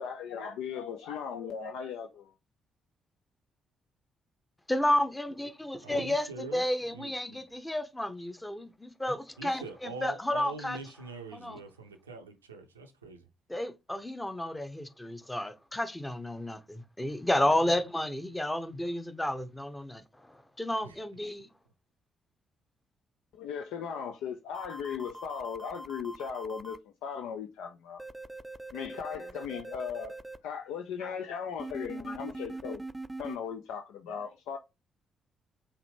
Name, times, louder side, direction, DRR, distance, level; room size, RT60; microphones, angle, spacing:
voice 1, 0.0-2.3 23.3-28.0 28.7-30.1 30.4-32.8 33.2-34.6, left 7 dB, 65° left, 0.4 m, -37 dB
voice 2, 4.7-10.8 11.4-11.6 13.5-21.5, left 1 dB, 10° left, 0.9 m, -31 dB
voice 3, 5.8-7.4 9.4-13.3 17.3-17.6 20.8-21.0, right 3 dB, 85° right, 0.5 m, -44 dB
sound 1, 24.5-26.8 28.0-30.4 31.6-33.4, right 2 dB, 15° right, 0.4 m, -42 dB
4.8 x 2.7 x 3.2 m
figure-of-eight pair, 40°, 0 cm